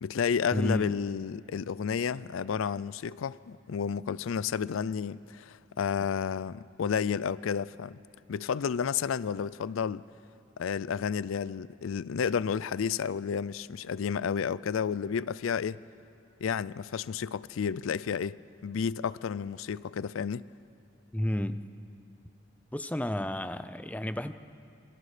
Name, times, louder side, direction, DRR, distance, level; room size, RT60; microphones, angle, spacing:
voice 1, 0.0-8.0 8.3-10.0 10.6-15.8 16.4-18.4 18.6-20.5, left 7 dB, 85° left, 0.4 m, -31 dB
voice 2, 0.5-1.0 21.1-21.7 22.7-24.3, left 1 dB, 5° left, 0.5 m, -31 dB
27.5 x 22.5 x 5.0 m
head